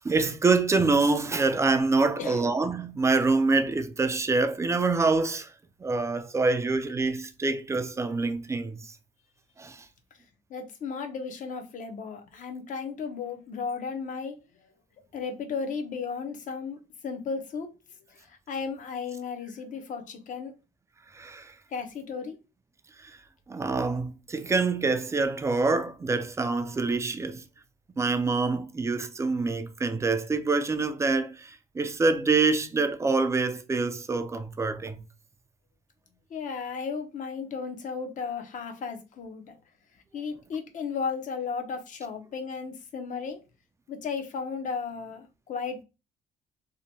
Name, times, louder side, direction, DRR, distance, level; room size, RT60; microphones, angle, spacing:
voice 1, 0.0-5.5 5.8-9.0 9.6-9.9 21.1-21.5 23.0-23.2 23.5-27.4 28.0-35.0, right 3 dB, 15° right, 0.3 m, -26 dB
voice 2, 10.5-14.4 15.1-17.7 18.1-20.5 21.7-22.4 36.3-39.5 40.1-43.4 43.9-45.8, left 5 dB, 50° left, 0.7 m, -35 dB
2.8 x 2.1 x 2.7 m
cardioid pair, 110°, 17 cm